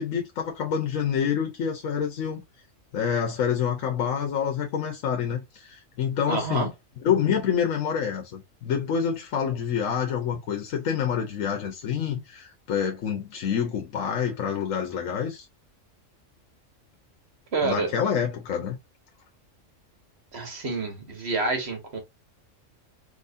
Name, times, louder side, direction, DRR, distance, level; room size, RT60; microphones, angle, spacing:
voice 1, 0.0-2.4 2.9-6.7 7.0-15.5 17.6-18.8, left 7 dB, 80° left, 1.2 m, -27 dB
voice 2, 6.3-6.7 17.5-17.9 20.3-22.0, right 3 dB, 55° right, 1.7 m, -28 dB
3.7 x 2.9 x 2.6 m
omnidirectional pair, 1.3 m